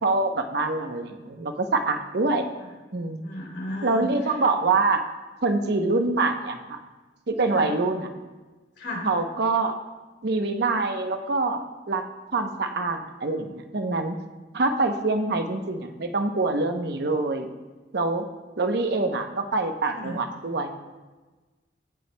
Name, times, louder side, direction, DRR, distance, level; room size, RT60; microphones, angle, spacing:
voice 1, 0.0-2.5 2.9-3.2 3.8-5.0 5.4-6.8 7.3-8.1 9.0-9.7 10.2-12.0 12.3-14.2 14.5-17.5 17.9-18.2 18.6-20.8, right 3 dB, 65° right, 6 dB, 0.8 m, -25 dB
voice 2, 3.2-4.1 7.5-7.7 8.8-9.1 19.9-20.2, left 1 dB, 70° left, -1 dB, 3.0 m, -34 dB
16.0 x 8.0 x 2.2 m, 1.2 s
head